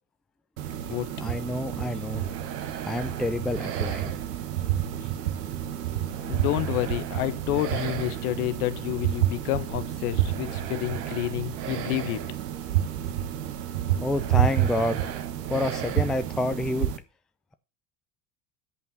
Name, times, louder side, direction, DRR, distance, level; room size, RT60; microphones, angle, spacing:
sound 1, 0.6-17.0, right 11 dB, 70° right, 1.1 m, -29 dB
voice 1, 1.2-2.3 2.9-4.1 14.0-15.1 15.5-16.9, left 1 dB, ahead, 0.4 m, -28 dB
voice 2, 6.2-12.3, left 15 dB, 60° left, 1.1 m, -29 dB
8.3 x 5.4 x 7.1 m
figure-of-eight pair, 70°, 50 cm